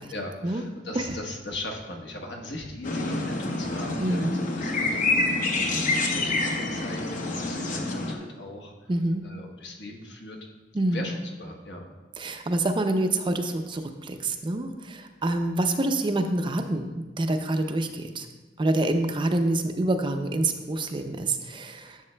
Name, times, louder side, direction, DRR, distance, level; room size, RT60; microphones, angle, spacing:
voice 1, 0.1-8.9 9.2-10.4 10.9-11.8, left 1 dB, 70° left, 1 dB, 1.1 m, -39 dB
sound 1, 2.8-8.1, left 2 dB, 45° left, 0.7 m, -27 dB
voice 2, 4.0-4.4 8.9-9.2 10.7-11.1 12.2-18.3 18.6-22.0, right 2 dB, 30° right, 6 dB, 0.4 m, -27 dB
11.0 x 7.2 x 2.2 m, 1.2 s
head